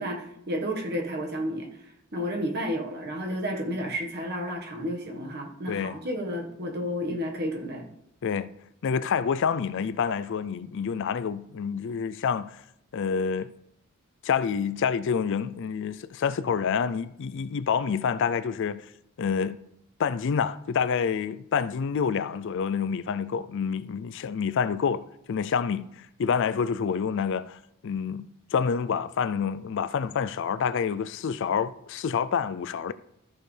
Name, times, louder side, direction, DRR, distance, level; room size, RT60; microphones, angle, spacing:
voice 1, 0.0-1.7 2.1-7.9, equal, 45° right, 1.5 m, -31 dB
voice 2, 5.7-6.0 8.2-8.5 8.8-12.6 12.9-13.5 14.2-18.8 19.2-19.6 20.0-32.9, left 6 dB, 55° left, 0.4 m, -28 dB
14.0 x 6.4 x 3.3 m
head